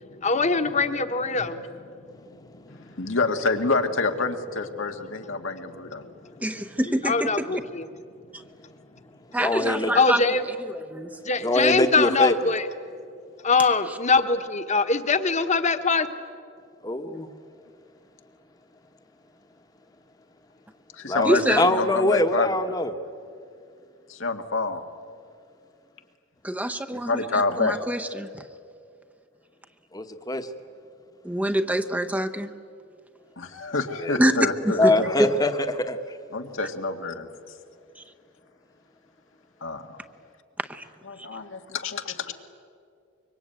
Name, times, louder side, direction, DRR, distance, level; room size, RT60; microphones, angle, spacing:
voice 1, 0.2-1.9 2.7-2.9 7.0-7.8 9.9-10.4 11.2-12.7 13.4-16.1, left 4 dB, 35° left, 8 dB, 1.3 m, -23 dB
voice 2, 3.0-6.1 20.9-22.5 24.1-24.8 26.9-27.8 33.4-35.1 36.3-37.3 39.6-40.0 41.1-42.3, left 3 dB, 90° left, 5 dB, 1.9 m, -27 dB
voice 3, 6.4-7.6 8.3-8.4 9.3-10.2 10.7-11.1 21.2-21.8 26.4-28.4 31.2-32.5 34.2-34.3 34.6-34.9 35.2-35.3 40.6-40.8, right 1 dB, 10° right, 7 dB, 0.8 m, -26 dB
voice 4, 9.4-9.9 11.4-12.3 16.8-17.3 21.0-21.3 21.6-22.9 29.9-30.5 34.0-34.2 34.8-36.2, left 1 dB, 20° left, 7 dB, 1.1 m, -23 dB
25.0 x 23.5 x 9.1 m, 2.4 s
head